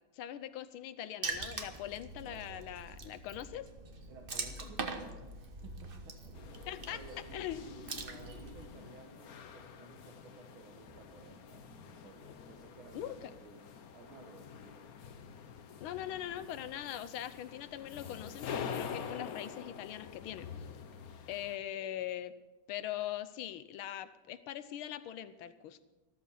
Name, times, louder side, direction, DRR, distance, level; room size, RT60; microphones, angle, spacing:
voice 1, 0.1-3.7 6.7-7.0 7.3-7.6 12.9-13.1 15.8-20.7 21.3-22.3 22.7-25.8, left 12 dB, 80° left, 14 dB, 1.5 m, -41 dB
Water / Splash splatter, 1.2-8.7, right 3 dB, 35° right, 0.9 m, -43 dB
sound 1, 1.3-5.4 5.6-5.7 6.2-10.3 10.8-15.2 15.9-20.3, left 1 dB, ahead, 4.2 m, -65 dB
voice 2, 2.1-2.7 4.1-6.2 6.5-14.9 21.8-22.0, right 4 dB, 75° right, 1 dB, 2.2 m, -55 dB
sound 2, 6.3-21.6, left 7 dB, 55° left, 1.1 m, -47 dB
14.0 x 13.5 x 5.6 m, 1.1 s
omnidirectional pair, 2.3 m